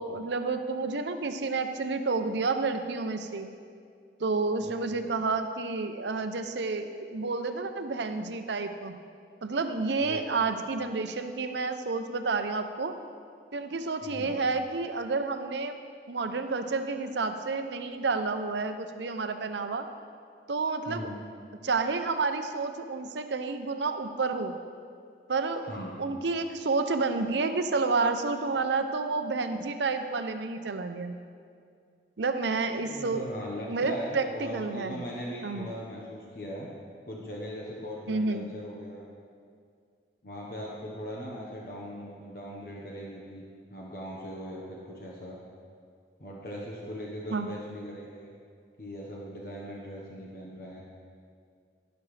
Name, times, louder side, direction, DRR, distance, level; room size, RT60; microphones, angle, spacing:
voice 1, 0.0-3.5 4.2-9.0 9.4-12.9 13.5-15.8 16.1-19.9 20.5-21.1 21.6-24.6 25.3-31.1 32.2-33.2 33.7-35.0 35.4-35.7 38.1-38.5 47.3-47.5, right 4 dB, 80° right, 8 dB, 0.6 m, -30 dB
voice 2, 4.6-5.1 10.0-10.5 14.0-14.4 20.9-21.2 25.7-26.0 32.8-36.7 37.1-39.1 40.2-43.4 43.7-45.4 46.2-48.3 48.8-50.8, equal, 55° left, -4 dB, 1.2 m, -40 dB
11.0 x 11.0 x 3.3 m, 2.2 s
head